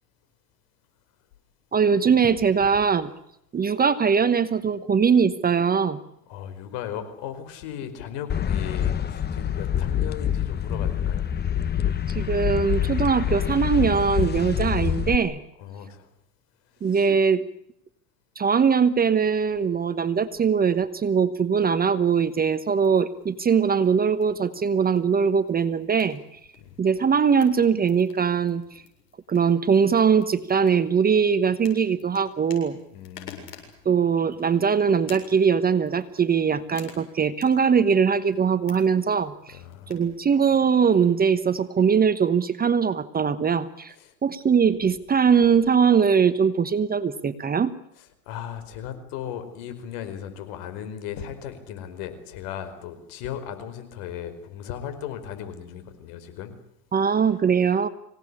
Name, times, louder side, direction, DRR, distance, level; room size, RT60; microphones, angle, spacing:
voice 1, 1.7-3.1 3.5-6.0 12.1-15.4 16.8-17.4 18.4-26.4 26.8-28.6 29.3-32.8 33.8-39.6 39.9-43.9 44.2-47.7 56.9-57.9, right 6 dB, 20° right, 13 dB, 1.0 m, -21 dB
voice 2, 6.3-11.3 15.6-16.1 16.8-17.1 26.6-26.8 32.9-33.6 39.5-39.9 43.9-44.1 48.0-56.5, left 9 dB, 60° left, 9 dB, 5.1 m, -37 dB
sound 1, 8.3-15.2, left 9 dB, 20° left, 1.1 m, -26 dB
sound 2, 22.2-41.5, left 8 dB, 75° left, 7.6 m, -52 dB
25.5 x 18.0 x 9.9 m, 0.80 s
supercardioid pair, 110°, 47 cm